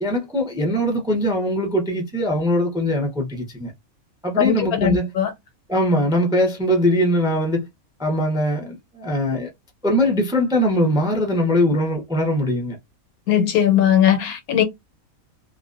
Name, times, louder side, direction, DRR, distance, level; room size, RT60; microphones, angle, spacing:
voice 1, 0.0-3.7 4.2-5.1 5.7-7.7 8.0-9.5 9.8-12.8, equal, 5° right, 0.4 m, -21 dB
voice 2, 4.4-5.3 13.3-14.6, left 10 dB, 90° left, 1.2 m, -18 dB
2.5 x 2.2 x 2.4 m
omnidirectional pair, 1.5 m